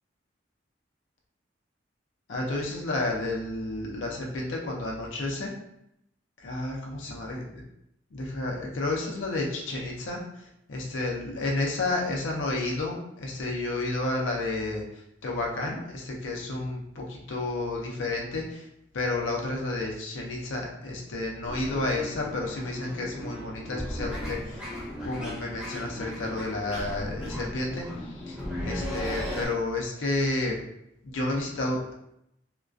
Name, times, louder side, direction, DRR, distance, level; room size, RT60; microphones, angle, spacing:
voice 1, 2.3-5.5 6.4-7.6 8.1-18.7 18.9-24.6 25.0-30.6 31.0-31.9, left 2 dB, 90° left, -1 dB, 0.5 m, -31 dB
sound 1, 21.4-29.5, left 1 dB, 5° right, 0.5 m, -36 dB
2.3 x 2.2 x 2.4 m, 0.79 s
head